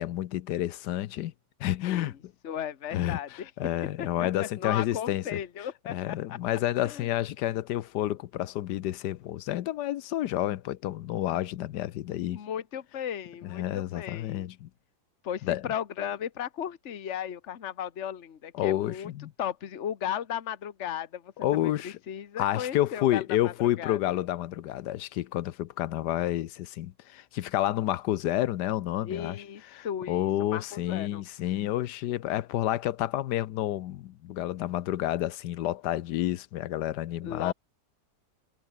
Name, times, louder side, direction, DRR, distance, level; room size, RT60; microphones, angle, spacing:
voice 1, 0.0-1.3 1.6-2.3 2.9-5.4 5.9-12.4 13.4-14.7 15.4-15.6 18.5-19.3 21.4-22.0 22.4-37.5, left 13 dB, 80° left, 1.3 m, -30 dB
voice 2, 2.4-3.5 4.0-6.4 6.8-7.1 12.3-14.5 15.2-19.1 19.4-21.3 21.6-24.0 29.0-31.2 37.2-37.5, left 9 dB, 45° left, 1.4 m, -36 dB
omnidirectional pair, 1.8 m